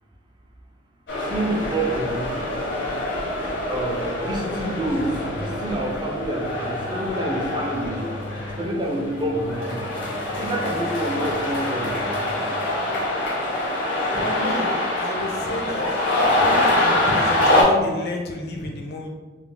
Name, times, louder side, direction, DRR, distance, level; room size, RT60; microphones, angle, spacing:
sound 1, 1.1-17.6, left 1 dB, 80° left, 0.8 m, -25 dB
voice 1, 1.3-2.4 3.7-8.1 8.6-9.9 10.3-12.1, right 1 dB, 25° right, 1 dB, 0.3 m, -27 dB
sound 2, 4.6-12.4, left 2 dB, 40° right, 0.8 m, -40 dB
voice 2, 14.1-14.7 15.0-15.9 16.4-19.1, left 1 dB, 55° left, 1 dB, 0.5 m, -30 dB
2.3 x 2.0 x 3.7 m, 1.4 s
head